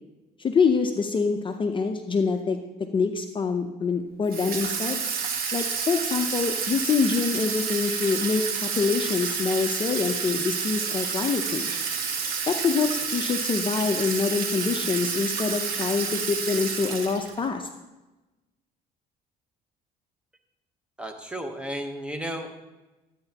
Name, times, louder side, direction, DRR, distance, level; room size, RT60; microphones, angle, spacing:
voice 1, 0.4-2.6 2.9-5.0 5.5-11.8 12.5-17.7, left 5 dB, 30° left, 5 dB, 0.6 m, -25 dB
Water tap faucet / Sink (filling or washing), 4.3-17.5, right 6 dB, 60° right, 1.3 m, -29 dB
voice 2, 21.0-22.6, equal, 5° right, 5 dB, 1.0 m, -33 dB
12.5 x 8.9 x 2.9 m, 1.1 s
cardioid pair, 110°, 17 cm